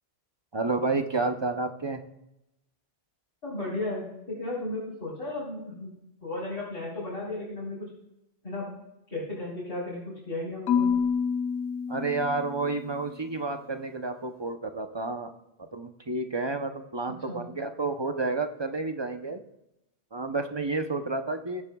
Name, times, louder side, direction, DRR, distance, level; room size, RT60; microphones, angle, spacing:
voice 1, 0.5-2.0 11.9-15.3 15.7-19.4 20.1-21.6, right 3 dB, 30° right, 7 dB, 0.6 m, -30 dB
voice 2, 3.4-5.9 6.2-7.9 8.4-8.7 9.1-11.0 17.3-17.4, left 2 dB, 60° left, -9 dB, 4.4 m, -34 dB
Marimba xylophone / Wood, 10.7-12.9, left 6 dB, 90° left, 1.2 m, -28 dB
19.5 x 9.2 x 2.3 m, 0.88 s
omnidirectional pair, 1.1 m